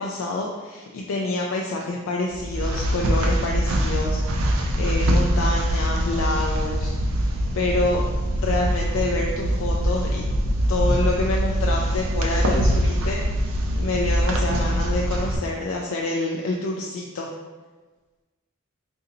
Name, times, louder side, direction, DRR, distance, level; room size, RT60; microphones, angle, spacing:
voice 1, 0.0-4.2 4.8-7.0 7.5-8.0 8.4-10.2 10.7-13.2 13.7-17.3, left 2 dB, 65° left, -1 dB, 0.3 m, -27 dB
sound 1, 2.3-15.4, equal, 85° right, 0.5 m, -23 dB
2.6 x 2.5 x 3.9 m, 1.3 s
head